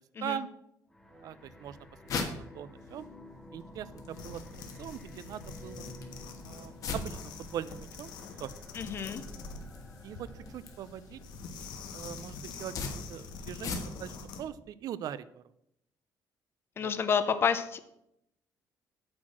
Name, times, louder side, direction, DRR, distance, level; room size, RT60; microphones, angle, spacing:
sound 1, 0.9-11.5, left 1 dB, 5° left, 1.0 m, -52 dB
voice 1, 1.1-1.8 2.2-3.1 3.5-4.4 4.8-5.9 6.4-8.1 8.4-8.5 10.0-11.2 11.9-12.7 13.1-15.4 16.8-16.9, right 10 dB, 60° right, 16 dB, 0.5 m, -41 dB
sound 2, 1.4-14.2, left 4 dB, 50° left, 1.5 m, -43 dB
sound 3, 4.1-14.5, left 4 dB, 90° left, 1.2 m, -46 dB
voice 2, 8.7-9.2 16.8-17.8, left 6 dB, 35° left, 10 dB, 0.7 m, -29 dB
8.7 x 4.5 x 7.4 m, 0.79 s
cardioid pair, 155°, 7 cm